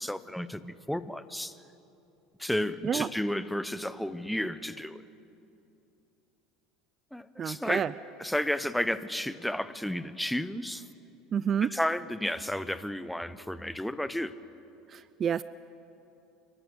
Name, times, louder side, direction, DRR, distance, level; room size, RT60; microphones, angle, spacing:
voice 1, 0.0-1.6 2.4-5.0 7.1-7.9 8.2-10.9 11.6-14.3, left 1 dB, 5° left, 14 dB, 0.9 m, -32 dB
voice 2, 7.4-7.9 11.3-11.7 14.9-15.4, right 8 dB, 40° right, 17 dB, 0.5 m, -29 dB
28.5 x 12.5 x 7.9 m, 2.9 s
hypercardioid pair, 80°, 0 cm